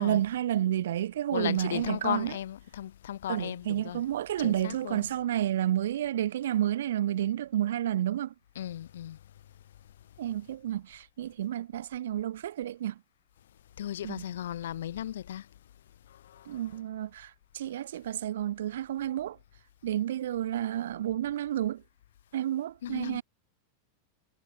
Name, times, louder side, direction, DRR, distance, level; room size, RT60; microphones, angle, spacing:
voice 1, 0.0-2.4 3.3-8.3 10.2-13.0 14.0-14.3 16.5-19.4 19.8-21.8 22.3-23.2, right 12 dB, 60° right, 0.5 m, -30 dB
voice 2, 1.3-4.0 4.4-5.0 8.6-9.2 13.8-15.5 16.3-16.5 22.8-23.2, left 11 dB, 60° left, 0.5 m, -35 dB
figure-of-eight pair, 90°, 0 cm